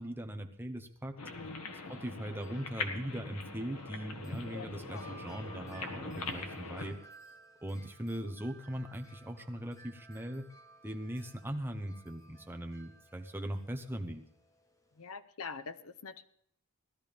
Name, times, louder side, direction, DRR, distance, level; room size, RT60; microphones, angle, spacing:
voice 1, 0.0-1.2 1.9-7.0 7.6-10.5 10.8-14.2, equal, 10° right, 4 dB, 0.9 m, -40 dB
sound 1, 1.2-6.9, left 3 dB, 90° left, 1.5 m, -42 dB
voice 2, 1.3-1.7 4.5-5.1 6.0-6.2 15.0-16.2, left 5 dB, 70° left, 13 dB, 0.7 m, -45 dB
Wind chime, 1.8-15.1, right 3 dB, 15° left, 1.0 m, -59 dB
18.0 x 12.0 x 3.5 m, 0.69 s
head